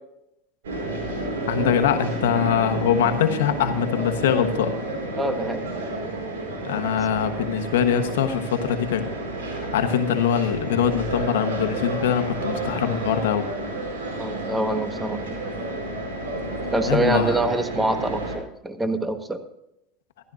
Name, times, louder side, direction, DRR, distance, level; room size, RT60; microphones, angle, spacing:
sound 1, 0.6-18.4, right 1 dB, 85° right, 4.7 m, -30 dB
voice 1, 1.5-4.7 6.6-9.1 9.5-13.4 16.9-17.4, left 8 dB, 85° left, 7 dB, 1.2 m, -23 dB
voice 2, 5.2-5.7 14.2-15.4 16.7-19.4, right 2 dB, 10° right, 8 dB, 1.4 m, -25 dB
15.0 x 14.0 x 2.6 m, 0.82 s
hypercardioid pair, 95°, 0 cm